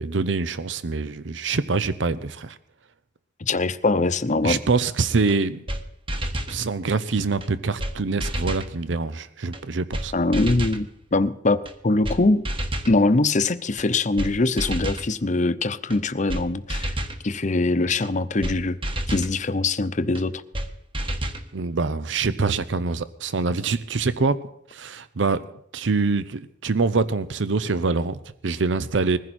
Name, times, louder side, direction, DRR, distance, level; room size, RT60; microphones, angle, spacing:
voice 1, 0.0-2.6 4.4-5.6 6.5-10.1 21.5-24.4 24.7-25.4 25.7-29.2, right 4 dB, 75° right, 14 dB, 0.7 m, -25 dB
voice 2, 3.4-4.6 10.1-12.5 12.9-17.0 17.2-18.8 19.1-20.4, left 2 dB, 40° left, 12 dB, 0.8 m, -22 dB
sound 1, 5.3-5.4 5.7-5.8 6.1-6.6 7.4-7.5 7.8-7.9 8.2-8.7 9.5-9.6 9.9-10.1 10.3-10.8 11.6-11.7 12.0-12.2 12.4-12.9 13.8-13.9 14.2-14.3 14.6-15.1 15.9-16.0 16.3-16.4 16.7-17.2 18.0-18.1 18.4-18.6 18.8-19.3 20.1-20.2 20.5-20.7 20.9-21.4, right 1 dB, 30° right, 1.5 m, -29 dB
21.5 x 15.5 x 4.3 m, 0.71 s
head